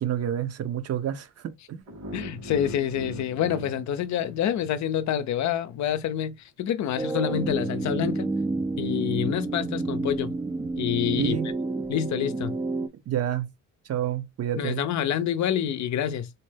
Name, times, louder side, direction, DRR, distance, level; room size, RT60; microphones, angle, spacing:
voice 1, 0.0-1.8 11.2-11.5 13.1-13.5 13.9-14.9, right 10 dB, 55° right, 0.7 m, -29 dB
sound 1, 1.9-4.9, equal, 80° right, 2.7 m, -40 dB
voice 2, 2.1-8.3 8.8-10.3 10.8-11.4 11.9-12.6 14.6-16.3, left 10 dB, 65° left, 0.6 m, -27 dB
sound 2, 7.0-12.9, right 3 dB, 15° right, 0.4 m, -29 dB
4.1 x 2.1 x 3.3 m
cardioid pair, 90°, 30 cm